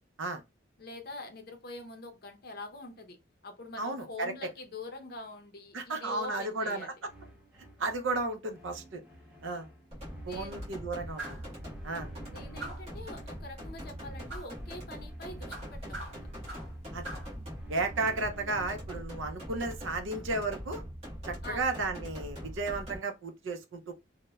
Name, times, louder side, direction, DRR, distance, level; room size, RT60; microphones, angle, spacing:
voice 1, 0.8-6.9 10.2-10.6 12.2-16.2 21.4-21.7, left 2 dB, 50° left, 0.5 m, -45 dB
voice 2, 3.8-4.3 5.7-6.9 7.8-9.0 9.4-9.7 10.3-11.4 11.8-12.1 16.9-17.1 17.7-20.8 21.2-23.9, right 3 dB, 75° right, 0.5 m, -33 dB
sound 1, 7.0-19.0, right 2 dB, 5° right, 0.9 m, -54 dB
sound 2, 9.9-23.0, equal, 35° right, 1.1 m, -42 dB
sound 3, 11.2-11.5 12.6-13.0 14.3-14.5 15.5-16.8 17.0-17.3, right 2 dB, 55° right, 1.4 m, -42 dB
3.0 x 2.1 x 2.3 m
head